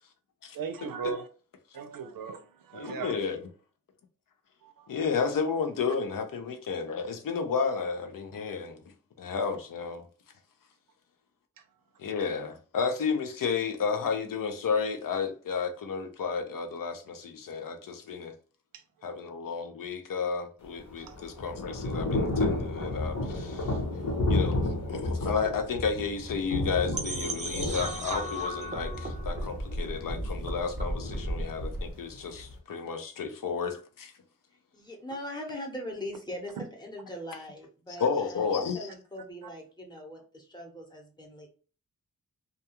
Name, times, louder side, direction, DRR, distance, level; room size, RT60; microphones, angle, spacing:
voice 1, 0.5-1.3 1.7-3.2 4.6-4.9 18.7-18.8 21.0-21.2 36.6-36.7 39.4-39.5, right 6 dB, 75° right, 0.5 m, -38 dB
voice 2, 2.7-3.4 4.9-8.8 9.2-10.1 12.0-18.3 19.0-23.8 24.3-34.1 38.0-38.9, left 5 dB, 70° left, 0.6 m, -32 dB
Thunder / Rain, 20.6-32.6, left 2 dB, 55° left, 0.9 m, -32 dB
sound 1, 26.9-31.9, right 1 dB, 20° right, 0.5 m, -35 dB
voice 3, 34.7-41.5, left 1 dB, 10° left, 0.8 m, -41 dB
2.4 x 2.3 x 2.8 m
wide cardioid pair, 85°, 34 cm